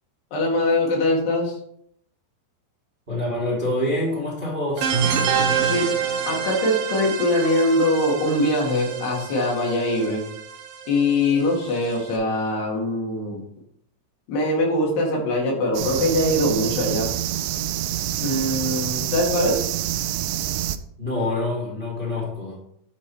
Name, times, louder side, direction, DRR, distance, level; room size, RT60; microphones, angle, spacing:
voice 1, 0.3-1.6 5.3-5.9 6.3-10.2 10.9-13.4 14.3-17.1 18.2-19.6, left 1 dB, 90° left, -2 dB, 4.3 m, -22 dB
voice 2, 3.1-4.9 21.0-22.6, left 1 dB, 45° right, -3 dB, 0.7 m, -26 dB
sound 1, 4.8-12.1, right 7 dB, 70° right, 2.6 m, -27 dB
sound 2, 15.7-20.8, right 12 dB, 85° right, 2.5 m, -27 dB
10.5 x 4.2 x 4.6 m, 0.69 s
omnidirectional pair, 4.6 m